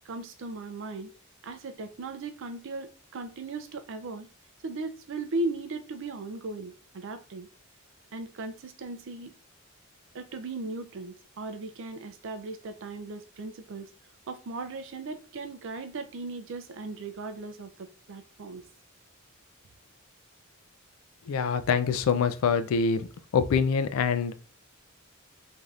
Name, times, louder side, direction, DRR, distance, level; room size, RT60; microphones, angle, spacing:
voice 1, 0.1-1.1 1.4-4.3 4.6-7.5 8.1-9.3 10.1-13.9 14.3-17.7 18.1-18.6, right 2 dB, 65° right, 8 dB, 0.4 m, -37 dB
voice 2, 21.3-23.1 23.3-24.3, left 6 dB, 70° left, 11 dB, 0.3 m, -25 dB
3.2 x 2.7 x 2.4 m, 0.37 s
head